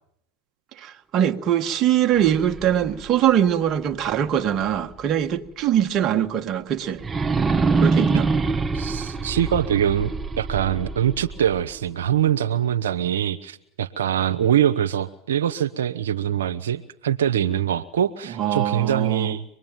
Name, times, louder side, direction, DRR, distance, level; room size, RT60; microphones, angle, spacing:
voice 1, 0.8-7.0 7.8-8.3 18.4-19.4, right 10 dB, 45° right, 1.7 m, -22 dB
sound 1, 2.1-5.0 5.5-5.6 7.0-12.0, right 4 dB, 20° right, 1.1 m, -26 dB
voice 2, 8.7-19.4, right 10 dB, 85° right, 0.9 m, -23 dB
24.5 x 21.5 x 9.2 m
hypercardioid pair, 100°, 0 cm